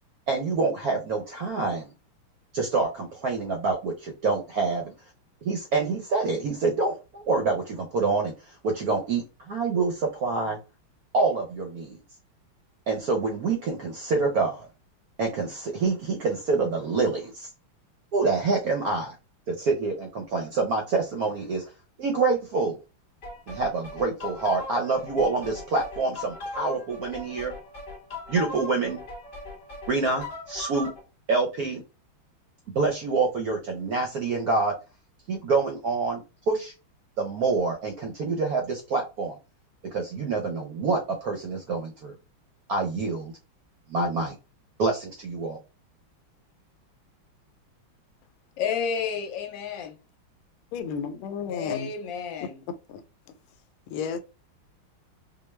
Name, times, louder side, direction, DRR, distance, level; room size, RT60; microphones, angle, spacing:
voice 1, 0.3-1.9 2.5-4.9 5.4-10.6 11.1-12.0 12.9-14.7 15.2-17.5 18.1-19.1 19.5-21.6 22.0-22.8 23.5-27.5 28.3-29.0 29.9-30.9 31.3-31.8 32.7-34.7 35.3-36.7 37.2-39.4 39.9-42.1 42.7-43.3 43.9-44.3 44.8-45.6, right 3 dB, 70° right, 0.9 m, -26 dB
sound 1, 23.2-31.0, left 2 dB, 35° left, 1.3 m, -39 dB
voice 2, 48.6-49.9 51.5-52.6, left 6 dB, 70° left, 1.3 m, -31 dB
voice 3, 50.7-51.9 52.9-53.0 53.9-54.2, left 6 dB, 90° left, 1.4 m, -32 dB
4.6 x 2.3 x 3.2 m
omnidirectional pair, 2.3 m